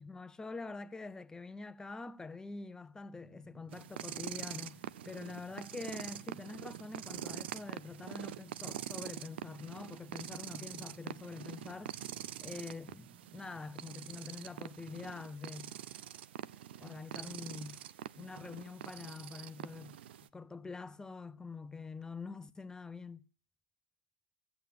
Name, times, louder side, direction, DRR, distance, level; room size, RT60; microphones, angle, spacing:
voice 1, 0.0-12.0 12.4-15.7 16.8-17.8 18.2-20.0 20.3-23.2, left 4 dB, 10° left, 0.7 m, -45 dB
sound 1, 3.1-15.1, right 8 dB, 30° right, 0.6 m, -61 dB
sound 2, 3.7-20.3, right 11 dB, 85° right, 0.6 m, -45 dB
14.5 x 8.2 x 6.7 m
supercardioid pair, 110°, 6 cm